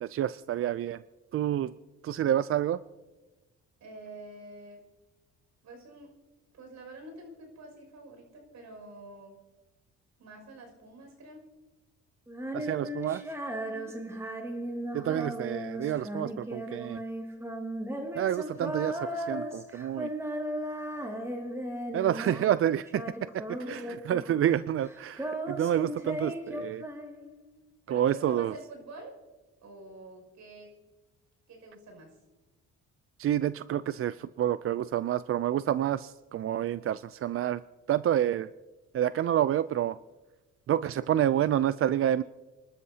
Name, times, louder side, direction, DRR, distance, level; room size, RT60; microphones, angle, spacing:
voice 1, 0.0-1.0 1.3-1.7 2.0-2.8 12.5-13.2 14.9-17.0 18.1-20.1 21.9-23.0 23.3-23.8 24.1-26.8 27.9-28.5 33.2-37.6 37.9-38.5 38.9-40.0 40.7-42.2, right 11 dB, 45° right, 15 dB, 0.4 m, -28 dB
voice 2, 3.8-4.8 5.6-6.1 6.5-9.4 10.2-11.5 13.6-14.0 23.5-23.9 27.9-29.2 29.6-30.7 31.5-32.2, right 2 dB, 70° right, 2 dB, 6.0 m, -47 dB
Female singing, 12.3-22.6 22.9-24.5 24.8-27.5, right 1 dB, 10° right, 2.3 m, -36 dB
29.5 x 12.5 x 2.8 m, 1.2 s
cardioid pair, 90°, 30 cm